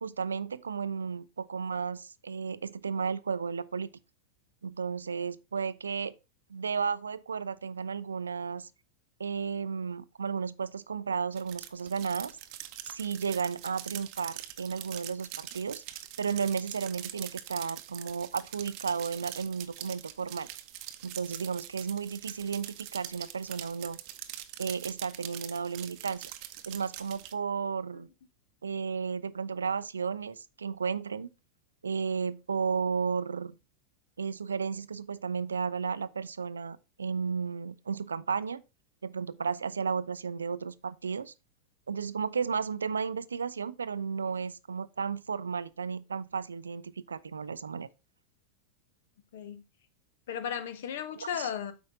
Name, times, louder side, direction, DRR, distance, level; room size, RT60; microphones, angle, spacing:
voice 1, 0.0-3.9 4.6-6.1 6.5-8.7 9.2-12.4 12.9-20.5 21.0-24.0 24.6-26.3 26.7-28.1 28.6-31.3 31.8-33.5 34.2-38.6 39.0-41.3 41.9-47.9 51.2-51.5, right 6 dB, 70° right, 0.4 m, -33 dB
sound 1, 11.3-27.3, right 13 dB, 45° right, 0.7 m, -44 dB
voice 2, 50.3-51.7, left 8 dB, 55° left, 1.0 m, -35 dB
8.3 x 5.2 x 3.6 m
figure-of-eight pair, 90°, 0 cm